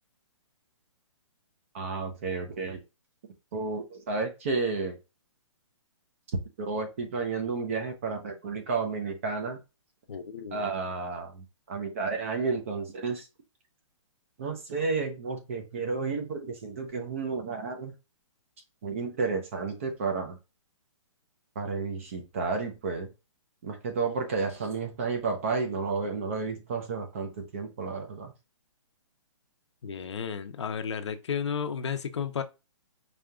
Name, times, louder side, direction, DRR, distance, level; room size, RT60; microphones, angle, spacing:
voice 1, 1.7-2.8 3.5-5.0 6.6-9.6 10.5-13.3 14.4-17.9 18.8-20.4 21.6-23.1 23.6-28.3, right 4 dB, 25° right, 0.6 m, -31 dB
voice 2, 10.1-10.7 29.8-32.4, left 7 dB, 55° left, 0.6 m, -33 dB
4.9 x 2.8 x 2.3 m
hypercardioid pair, 170°, 17 cm